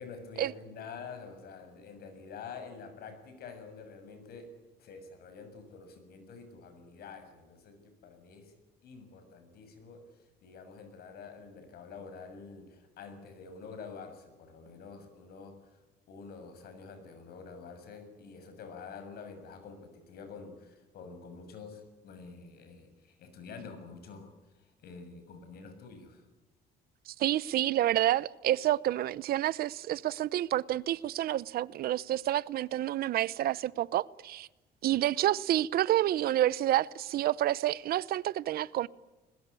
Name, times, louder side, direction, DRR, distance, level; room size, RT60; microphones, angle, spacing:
voice 1, 0.0-4.5 4.8-8.5 8.8-15.8 16.1-26.2, left 5 dB, 65° left, 6.8 m, -47 dB
voice 2, 27.1-34.5 34.8-38.9, right 13 dB, 65° right, 0.8 m, -29 dB
21.5 x 20.5 x 9.8 m
cardioid pair, 110°, 17 cm